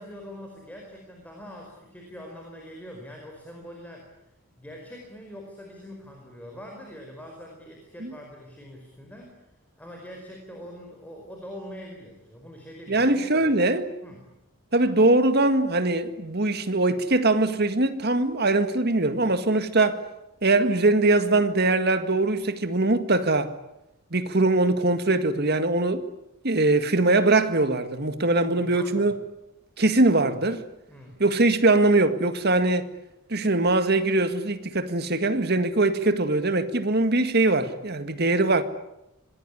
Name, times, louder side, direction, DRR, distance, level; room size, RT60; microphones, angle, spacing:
voice 1, 0.0-4.1 4.6-9.4 9.8-13.5 14.0-14.2 28.4-29.1 30.9-31.2, equal, 5° left, 4.8 m, -43 dB
voice 2, 12.9-13.9 14.7-20.0 20.4-23.5 24.1-26.1 26.4-29.1 29.8-30.6 31.2-32.9 33.3-38.6, right 2 dB, 45° right, 1.9 m, -22 dB
26.0 x 20.0 x 9.9 m
head